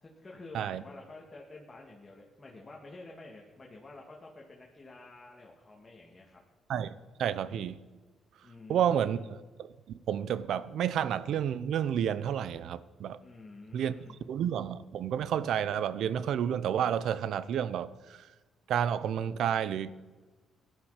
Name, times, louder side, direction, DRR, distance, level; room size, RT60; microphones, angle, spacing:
voice 1, 0.0-6.4 8.4-9.3 13.2-14.2, left 2 dB, 25° left, 2.3 m, -50 dB
voice 2, 7.2-7.8 8.7-9.2 9.6-13.2 13.7-13.9 14.3-18.2 18.7-19.9, right 9 dB, 75° right, 0.7 m, -30 dB
17.0 x 11.5 x 5.1 m
cardioid pair, 90°, 0 cm